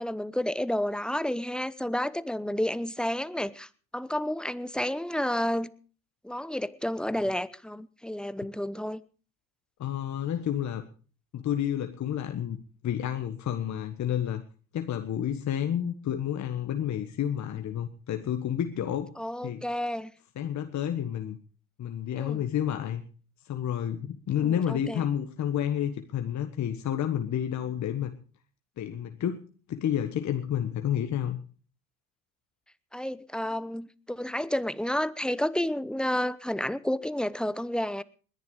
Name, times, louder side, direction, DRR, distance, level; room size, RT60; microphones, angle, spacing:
voice 1, 0.0-5.7 6.2-9.0 19.2-20.1 22.2-22.4 24.4-25.0 32.9-38.0, left 1 dB, ahead, 17 dB, 0.9 m, -31 dB
voice 2, 9.8-10.8 11.3-12.6 12.8-14.4 14.7-19.1 19.4-19.6 20.3-21.4 21.8-23.0 23.4-28.1 28.8-31.4, left 10 dB, 45° left, 7 dB, 1.5 m, -30 dB
20.5 x 11.0 x 5.0 m, 0.39 s
hypercardioid pair, 70°, 40 cm